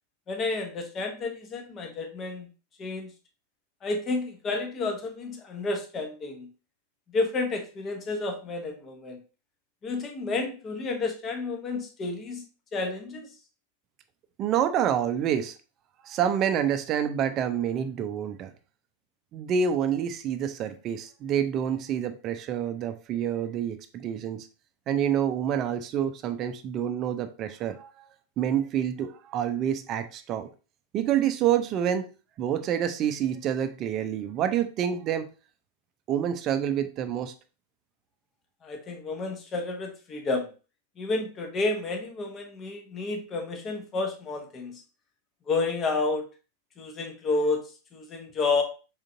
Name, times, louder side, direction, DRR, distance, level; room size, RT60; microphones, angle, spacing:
voice 1, 0.3-2.5 2.8-3.1 3.8-6.5 7.1-9.2 9.8-12.4 12.7-13.3 38.6-40.5 41.0-44.8 45.5-46.2 46.8-47.6 47.9-48.6, left 3 dB, 25° left, 4 dB, 0.9 m, -30 dB
voice 2, 14.4-15.6 16.0-18.5 19.3-24.5 24.9-27.9 28.4-30.5 30.9-32.1 32.4-35.3 36.1-37.3, right 9 dB, 35° right, 10 dB, 0.5 m, -27 dB
4.4 x 3.8 x 2.6 m, 0.34 s
figure-of-eight pair, 90°, 0 cm